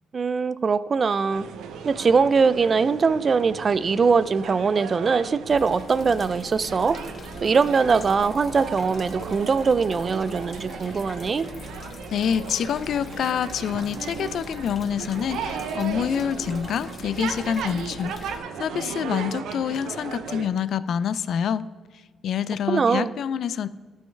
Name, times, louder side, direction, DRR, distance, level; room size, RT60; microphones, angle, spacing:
voice 1, 0.1-1.5 1.8-7.0 7.4-11.5 22.7-23.1, right 5 dB, 40° right, 16 dB, 0.3 m, -22 dB
sound 1, 1.3-20.5, right 6 dB, 80° right, 0.6 m, -36 dB
sound 2, 5.5-18.4, left 3 dB, 40° left, 0.9 m, -42 dB
voice 2, 12.1-21.6 22.2-23.7, left 8 dB, 65° left, 15 dB, 0.3 m, -27 dB
12.0 x 5.5 x 3.3 m, 1.4 s
cardioid pair, 90°, 0 cm